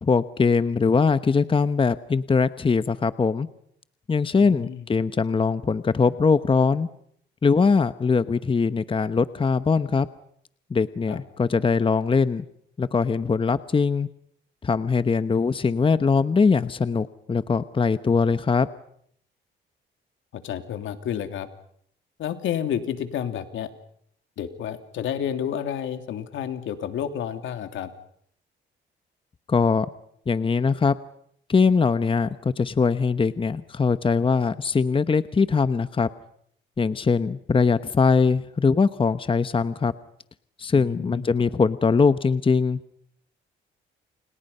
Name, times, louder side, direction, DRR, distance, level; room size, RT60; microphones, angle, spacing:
voice 1, 0.0-3.5 4.1-6.9 7.4-10.1 10.7-12.5 12.8-14.1 14.6-18.7 29.5-29.9 30.3-30.9 31.5-36.1 36.8-39.9 40.6-42.8, left 5 dB, 25° left, 13 dB, 1.0 m, -21 dB
voice 2, 20.3-21.5 22.2-23.7 24.4-27.9 40.7-41.2, left 9 dB, 75° left, 7 dB, 3.0 m, -30 dB
30.0 x 28.0 x 5.6 m, 0.68 s
cardioid pair, 90°, 20 cm